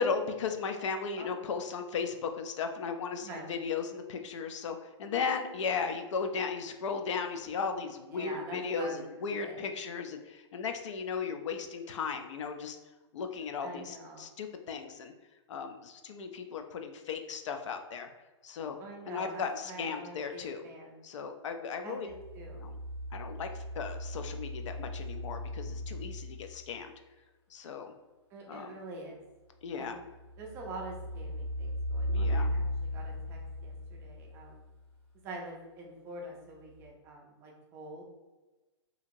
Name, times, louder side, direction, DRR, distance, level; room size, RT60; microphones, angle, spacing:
voice 1, 0.0-12.8 13.1-15.1 15.5-18.1 18.4-18.8 19.1-20.6 21.0-22.1 22.6-22.8 23.1-27.0 27.5-27.9 28.5-28.7 29.6-30.0 32.1-32.5, left 5 dB, 75° left, 6 dB, 0.4 m, -36 dB
voice 2, 1.2-1.5 3.2-3.5 8.1-9.7 13.6-14.3 18.8-21.0 21.8-22.7 28.3-29.2 29.8-30.0 30.4-32.6 32.9-34.6 35.2-38.0, right 2 dB, 15° right, -1 dB, 0.3 m, -45 dB
sound 1, 22.1-26.7 30.1-34.7 36.8-36.9, left 1 dB, 15° left, 0.8 m, -36 dB
2.8 x 2.7 x 2.5 m, 1.2 s
hypercardioid pair, 160°, 16 cm